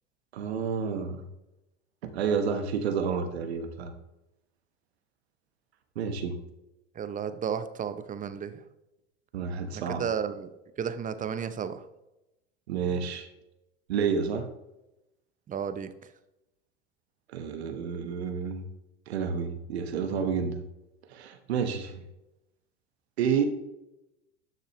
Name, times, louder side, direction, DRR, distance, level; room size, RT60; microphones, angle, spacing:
voice 1, 0.3-1.2 2.1-3.9 5.9-6.4 9.3-10.0 12.7-13.3 13.9-14.5 17.3-18.6 19.1-20.6 21.1-22.0 23.2-23.4, right 6 dB, 75° right, 7 dB, 1.2 m, -29 dB
voice 2, 7.0-8.6 9.7-10.5 10.8-11.8 15.5-15.9, right 7 dB, 25° right, 11 dB, 0.8 m, -33 dB
12.0 x 6.7 x 3.1 m, 0.93 s
hypercardioid pair, 85°, 32 cm